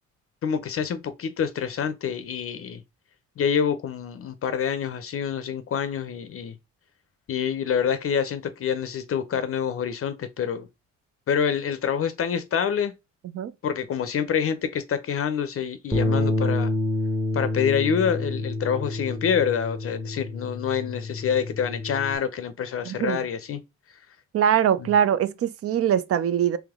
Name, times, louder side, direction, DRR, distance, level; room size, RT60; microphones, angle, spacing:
voice 1, 0.4-2.8 3.4-6.6 7.3-10.7 11.3-12.9 13.6-16.7 17.3-23.6, left 7 dB, 50° left, 0.5 m, -26 dB
Bass guitar, 15.9-22.2, left 2 dB, ahead, 0.8 m, -28 dB
voice 2, 22.8-23.2 24.3-26.6, right 9 dB, 50° right, 0.5 m, -22 dB
3.3 x 3.1 x 3.5 m
cardioid pair, 90°, 30 cm